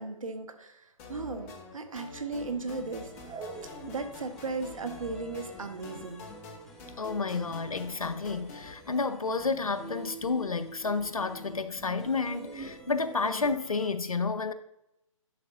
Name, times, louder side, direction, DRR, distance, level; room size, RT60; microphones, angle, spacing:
voice 1, 0.0-3.1 3.9-6.2, right 3 dB, 75° right, 1.1 m, -36 dB
sound 1, 1.0-8.7, left 3 dB, 25° left, 0.9 m, -47 dB
sound 2, 2.4-13.9, right 2 dB, ahead, 0.4 m, -50 dB
sound 3, 2.7-4.3 4.6-4.7 4.9-7.2 7.5-7.7 8.0-8.6 8.9-9.0 9.4-9.5 9.9-11.2 11.5-13.5, right 4 dB, 15° right, 1.1 m, -46 dB
voice 2, 7.0-14.5, left 4 dB, 85° left, 0.6 m, -30 dB
10.5 x 5.1 x 2.5 m
figure-of-eight pair, 135°, 18 cm